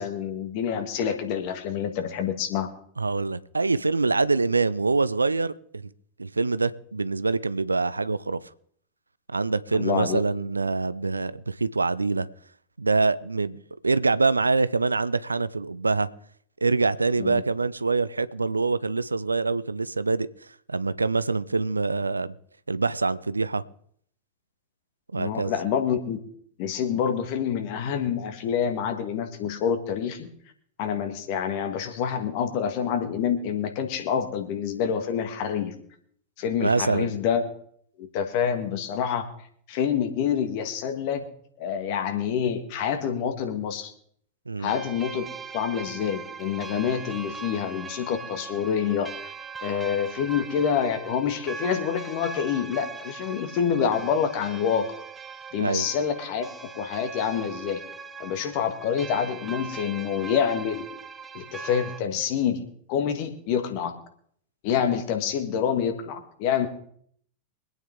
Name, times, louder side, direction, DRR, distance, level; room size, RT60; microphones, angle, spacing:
voice 1, 0.0-2.7 9.7-10.2 17.2-17.4 25.2-26.2 26.6-30.3 30.8-35.7 36.4-37.4 38.0-39.3 39.7-41.2 41.6-43.9 44.6-45.2 45.5-49.3 49.6-54.9 55.5-57.8 58.2-60.8 61.3-63.9 64.6-66.7, left 8 dB, 45° left, 2.0 m, -27 dB
voice 2, 3.0-5.9 6.2-8.4 9.3-12.3 12.8-16.1 16.6-20.3 20.7-22.4 22.7-23.6 25.1-25.5 36.6-37.1 44.5-44.7 55.6-55.9, right 3 dB, 80° right, 0.5 m, -25 dB
sound 1, 44.7-62.0, right 5 dB, 15° right, 0.9 m, -40 dB
24.0 x 9.1 x 3.7 m
figure-of-eight pair, 90°, 0 cm